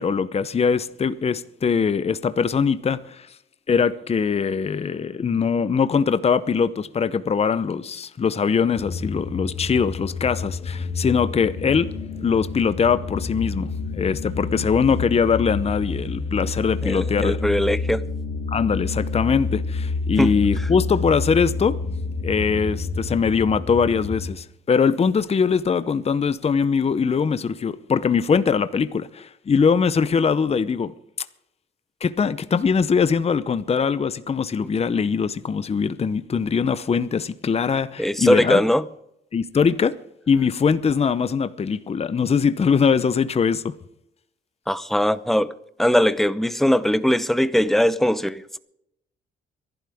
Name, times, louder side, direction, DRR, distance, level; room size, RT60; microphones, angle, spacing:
voice 1, 0.0-3.3 3.7-17.4 18.5-21.9 22.2-31.3 32.0-38.6 39.3-40.0 40.3-43.7, left 6 dB, 30° left, 0.7 m, -22 dB
sound 1, 8.8-24.3, left 3 dB, 65° left, 2.1 m, -29 dB
voice 2, 16.8-18.0 20.2-20.3 38.0-38.8 44.7-45.5 45.8-48.6, equal, ahead, 0.8 m, -20 dB
24.0 x 12.0 x 3.6 m
cardioid pair, 90°, 20 cm